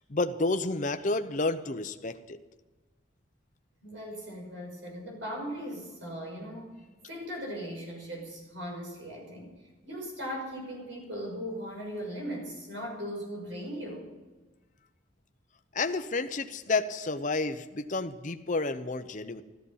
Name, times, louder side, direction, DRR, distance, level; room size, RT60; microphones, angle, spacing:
voice 1, 0.0-2.4 15.7-19.4, left 3 dB, 40° left, 9 dB, 0.8 m, -30 dB
voice 2, 3.8-6.7 7.0-14.1, equal, 80° right, -1 dB, 6.2 m, -38 dB
14.0 x 14.0 x 5.6 m, 1.2 s
head